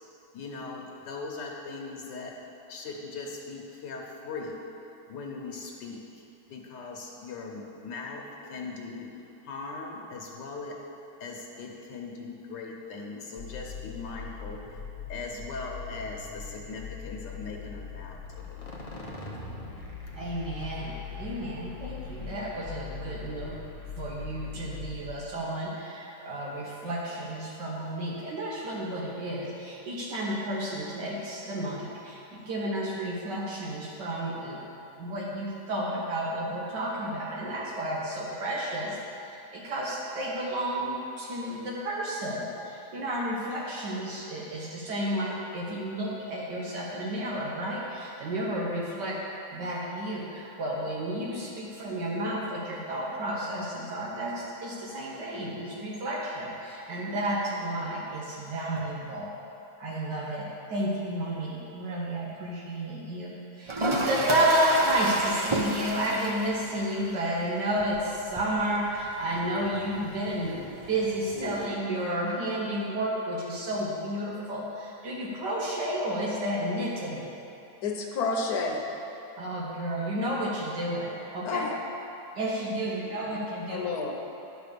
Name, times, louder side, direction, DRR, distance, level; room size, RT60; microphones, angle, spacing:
voice 1, 0.3-2.3 2.7-4.6 5.1-6.2 6.5-9.1 9.4-10.8 11.2-14.6 15.1-18.9, left 3 dB, 80° left, -1 dB, 1.6 m, -39 dB
sound 1, 13.4-25.1, left 6 dB, 30° left, 0.6 m, -41 dB
voice 2, 20.1-23.6 24.0-34.6 35.0-39.0 39.2-49.2 49.5-59.3 59.8-77.3 79.4-81.7 82.3-83.9, right 1 dB, 75° right, -4 dB, 1.7 m, -31 dB
Toilet flush, 63.7-71.7, right 1 dB, 35° right, 0.4 m, -34 dB
voice 3, 77.8-78.8 81.4-81.7 82.9-83.1 83.7-84.1, left 4 dB, 65° left, 1 dB, 1.4 m, -30 dB
10.5 x 5.1 x 6.8 m, 2.9 s
omnidirectional pair, 1.9 m